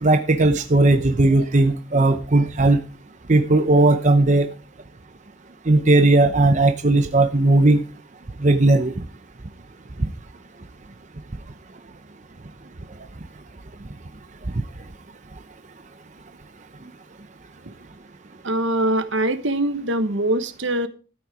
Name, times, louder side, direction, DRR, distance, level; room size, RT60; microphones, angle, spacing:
voice 1, 0.0-2.8 3.3-4.5 5.7-7.8 8.4-8.9, right 2 dB, 35° right, 8 dB, 0.7 m, -17 dB
voice 2, 18.4-20.9, right 1 dB, 65° right, 10 dB, 1.3 m, -23 dB
13.0 x 8.8 x 5.0 m, 0.35 s
head